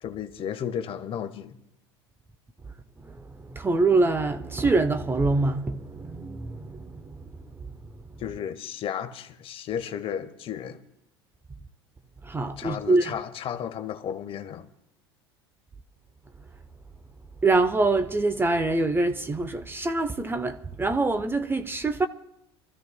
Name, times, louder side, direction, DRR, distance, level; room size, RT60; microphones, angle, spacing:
voice 1, 0.0-1.6 8.2-10.8 12.6-14.7, left 9 dB, 40° left, 1.0 m, -33 dB
voice 2, 3.4-7.2 12.2-13.1 17.4-22.1, right 3 dB, 15° right, 0.7 m, -25 dB
28.5 x 14.0 x 2.2 m
hypercardioid pair, 75°, 14 cm